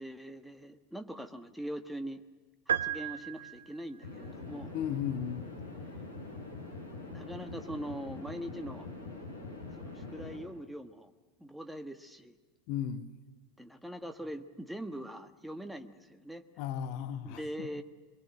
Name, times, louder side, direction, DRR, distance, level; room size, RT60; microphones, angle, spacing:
voice 1, 0.0-2.2 2.7-4.7 7.1-8.9 9.8-11.1 11.4-12.4 13.6-16.4 17.2-17.8, equal, ahead, 7 dB, 1.4 m, -42 dB
sound 1, 2.7-4.0, right 10 dB, 70° right, 0.8 m, -34 dB
sound 2, 4.0-10.4, left 3 dB, 90° right, 7.5 m, -44 dB
voice 2, 4.7-5.4 12.7-13.1 16.6-17.7, left 9 dB, 50° left, 10 dB, 1.3 m, -35 dB
23.5 x 22.0 x 7.9 m, 1.3 s
figure-of-eight pair, 80°, 0 cm